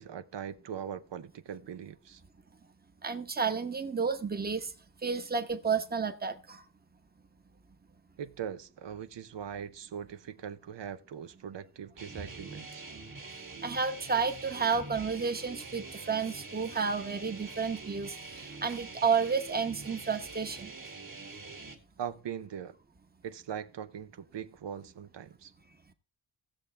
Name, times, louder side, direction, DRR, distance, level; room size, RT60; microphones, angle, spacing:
voice 1, 0.0-2.2 8.2-12.8 22.0-22.8 23.2-25.5, right 8 dB, 85° right, 0.8 m, -41 dB
voice 2, 3.0-4.7 5.0-6.6 13.6-20.7, right 5 dB, 20° right, 0.9 m, -31 dB
sound 1, 12.0-21.8, right 3 dB, 50° right, 2.1 m, -45 dB
17.0 x 7.1 x 3.3 m
wide cardioid pair, 160°, 42 cm